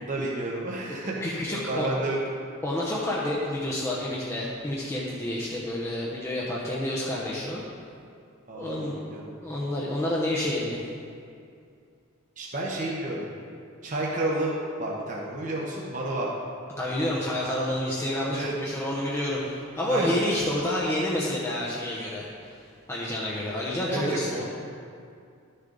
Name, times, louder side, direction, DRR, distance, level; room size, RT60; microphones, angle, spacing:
voice 1, 0.0-2.2 8.5-9.3 12.4-13.3 13.8-16.3 18.3-18.5 19.8-20.2 23.9-24.4, right 2 dB, 40° right, -4 dB, 1.0 m, -30 dB
voice 2, 1.2-1.9 2.6-7.6 8.5-10.8 16.8-24.3, left 1 dB, 15° left, -6 dB, 0.8 m, -29 dB
12.0 x 6.6 x 3.9 m, 2.4 s
head